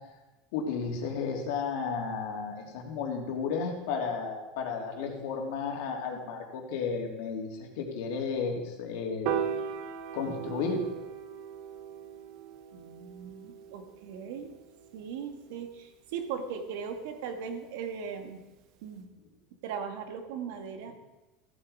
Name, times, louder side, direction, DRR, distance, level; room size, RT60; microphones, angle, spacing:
voice 1, 0.5-9.4 10.1-10.8, left 5 dB, 75° left, 2 dB, 2.8 m, -33 dB
Piano, 9.3-15.6, right 8 dB, 55° right, 1.1 m, -38 dB
voice 2, 12.7-14.5 14.9-18.4 18.8-19.1 19.6-20.9, right 6 dB, 75° right, 6 dB, 1.8 m, -38 dB
14.5 x 9.7 x 5.0 m, 1.1 s
supercardioid pair, 145°, 0 cm